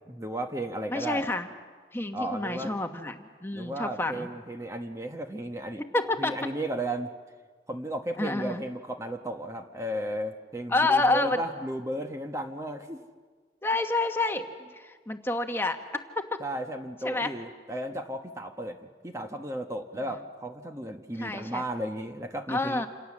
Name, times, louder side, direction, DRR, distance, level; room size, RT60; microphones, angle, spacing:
voice 1, 0.1-1.3 2.1-2.7 3.5-5.8 6.2-7.1 7.7-13.0 16.4-22.8, right 1 dB, 15° right, 5 dB, 1.1 m, -34 dB
voice 2, 0.9-1.5 1.9-4.3 5.9-6.3 8.2-8.6 10.7-11.4 13.6-14.5 14.7-15.8 17.0-17.3 21.2-21.6 22.5-22.9, left 2 dB, 15° left, 5 dB, 1.3 m, -28 dB
28.0 x 28.0 x 7.4 m, 1.5 s
head